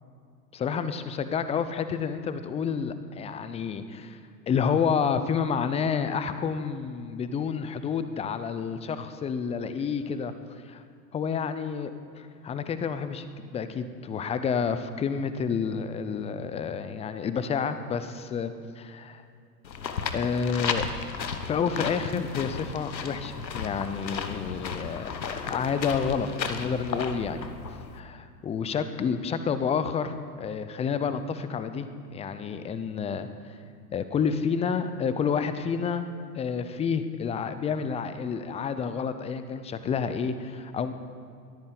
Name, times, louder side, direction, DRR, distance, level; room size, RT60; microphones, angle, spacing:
voice 1, 0.5-4.2 4.5-10.3 10.7-10.8 11.1-11.9 12.2-19.2 20.1-20.9 21.4-27.4 27.9-33.3 33.9-40.9, left 6 dB, 15° left, 11 dB, 0.5 m, -29 dB
sound 1, 19.6-28.0, left 5 dB, 85° left, 1.2 m, -34 dB
21.0 x 13.5 x 3.9 m, 2.4 s
hypercardioid pair, 100°, 50 cm